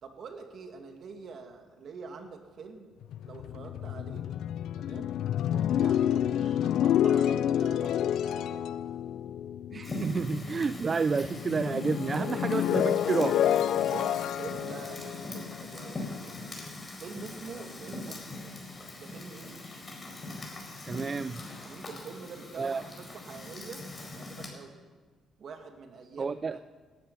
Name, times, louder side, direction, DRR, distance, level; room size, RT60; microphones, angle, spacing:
voice 1, 0.0-2.9 3.2-4.3 4.8-5.2 5.5-8.9 9.2-9.3 13.9-16.4 17.0-18.4 19.0-19.8 21.6-24.7 25.4-26.6, right 5 dB, 60° right, 4 dB, 2.2 m, -45 dB
sound 1, 3.0-10.8 11.1-16.2, left 10 dB, 80° left, 0.4 m, -29 dB
voice 2, 9.7-13.4 20.9-21.4 22.6-22.8 26.2-26.6, right 5 dB, 35° right, 14 dB, 0.4 m, -30 dB
Fire, 9.8-24.5, left 2 dB, 30° left, 4.4 m, -41 dB
17.5 x 12.0 x 5.7 m, 1.4 s
cardioid pair, 90°, 0 cm